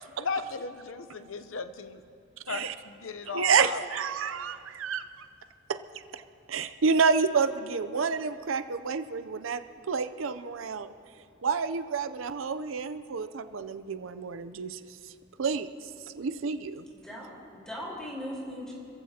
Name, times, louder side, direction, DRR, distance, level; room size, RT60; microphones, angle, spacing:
voice 1, 0.2-1.9 2.5-3.8, left 4 dB, 85° left, 9 dB, 0.7 m, -35 dB
voice 2, 3.3-5.0 5.7-5.8 6.1-6.2 6.5-9.6 9.9-10.9 11.4-14.8 15.4-15.7 16.1-16.8, right 5 dB, 85° right, 11 dB, 0.6 m, -29 dB
voice 3, 16.8-18.7, equal, 5° left, -6 dB, 4.1 m, -39 dB
29.5 x 15.0 x 2.9 m, 2.5 s
head